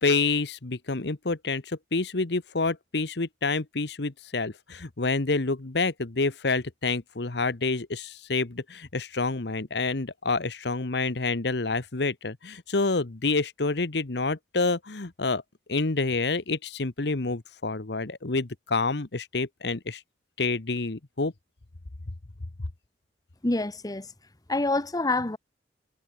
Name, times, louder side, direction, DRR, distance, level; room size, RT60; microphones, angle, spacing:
voice 1, 0.0-15.4 15.7-20.0 20.4-21.3, left 3 dB, 70° left, 1.2 m, -28 dB
voice 2, 23.4-24.1 24.5-25.4, left 2 dB, 20° left, 1.0 m, -26 dB
head